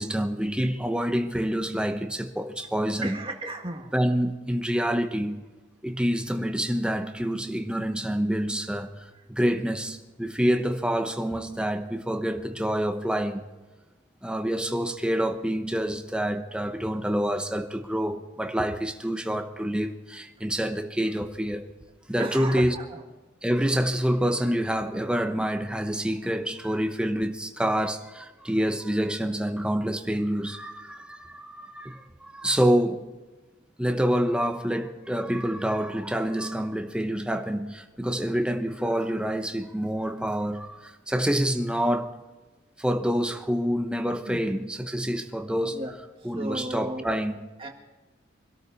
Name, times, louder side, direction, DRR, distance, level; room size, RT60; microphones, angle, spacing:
voice 1, 0.0-3.2 3.9-5.4 5.8-13.5 14.2-21.7 22.1-22.8 23.4-33.1 33.8-42.1 42.8-45.8 46.2-47.4, equal, 5° right, 0.9 m, -27 dB
voice 2, 3.0-3.9 9.1-9.2 22.2-23.0 41.7-41.9 44.3-44.4 45.7-45.9 46.2-47.0 47.6-47.7, right 2 dB, 30° right, 1.9 m, -35 dB
24.5 x 13.0 x 4.1 m
head